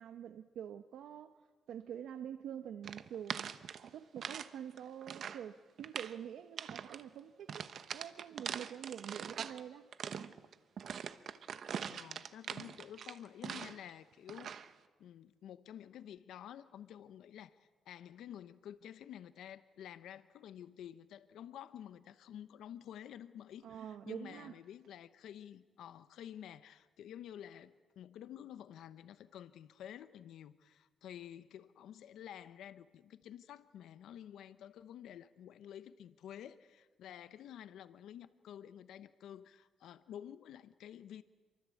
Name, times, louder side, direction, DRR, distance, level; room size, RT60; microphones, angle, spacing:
voice 1, 0.0-3.5 3.9-7.7 7.9-9.9 23.6-24.6, right 9 dB, 75° right, 0.9 m, -46 dB
sound 1, 2.8-4.5 4.8-5.5 5.8-6.2 6.6-7.0 7.5-9.6 9.9-13.9 14.3-14.7, right 7 dB, 55° right, 1.0 m, -43 dB
voice 2, 11.9-14.6 15.0-41.2, left 10 dB, 80° left, 0.9 m, -51 dB
28.0 x 24.0 x 8.5 m
cardioid pair, 140°, 0 cm